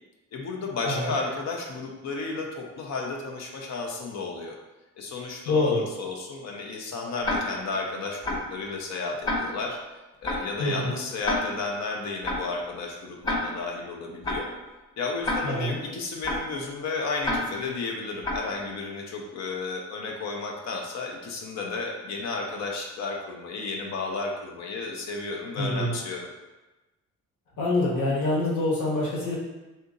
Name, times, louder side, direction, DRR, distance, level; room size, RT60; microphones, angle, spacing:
voice 1, 0.3-4.6 5.0-9.8 10.2-14.5 15.0-26.3, left 3 dB, 60° left, 0 dB, 0.6 m, -33 dB
voice 2, 0.8-1.1 5.5-5.8 10.6-10.9 15.4-15.8 25.5-25.9 27.6-29.4, left 2 dB, 80° left, -4 dB, 1.2 m, -25 dB
Tick-tock, 7.2-7.7 8.2-8.6 9.2-9.7 10.2-10.6 11.2-11.7 12.2-12.6 13.2-13.7 14.2-14.6 15.2-15.7 16.2-16.6 17.2-17.7 18.2-18.6, left 1 dB, 15° left, 0.8 m, -29 dB
2.7 x 2.6 x 3.7 m, 1.1 s
cardioid pair, 90°, 30 cm